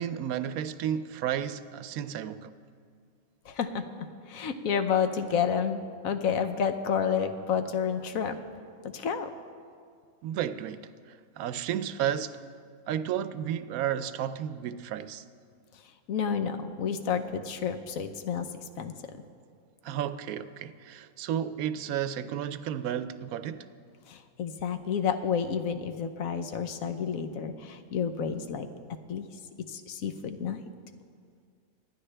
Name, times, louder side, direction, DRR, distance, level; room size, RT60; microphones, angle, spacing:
voice 1, 0.0-2.5 10.2-12.4 12.9-15.2 19.8-23.7, right 10 dB, 85° right, 1.0 m, -32 dB
voice 2, 3.4-3.9 4.3-8.4 8.9-9.3 16.1-18.5 18.8-18.9 24.1-28.7 29.1-29.3 29.7-30.6, left 7 dB, 75° left, 1.2 m, -30 dB
25.0 x 10.0 x 3.3 m
omnidirectional pair, 1.5 m